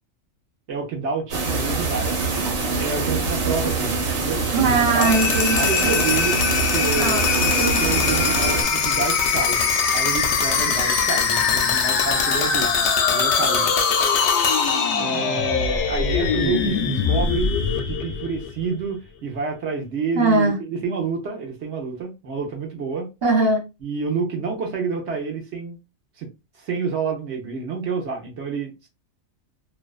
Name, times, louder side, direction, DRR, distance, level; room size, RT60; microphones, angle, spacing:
voice 1, 0.7-2.4 2.8-5.1 5.6-6.4 6.7-7.5 7.8-13.7 14.7-23.1 23.8-25.8 26.2-26.3 26.5-28.9, right 5 dB, 60° right, 1.0 m, -29 dB
sound 1, 1.3-8.6, right 4 dB, 80° right, 1.3 m, -24 dB
voice 2, 4.5-5.9 7.0-8.0 20.2-20.6 23.2-23.6, right 3 dB, 25° right, 0.6 m, -21 dB
sound 2, 4.9-18.7, left 5 dB, 65° left, 0.8 m, -22 dB
2.6 x 2.2 x 2.3 m
omnidirectional pair, 1.4 m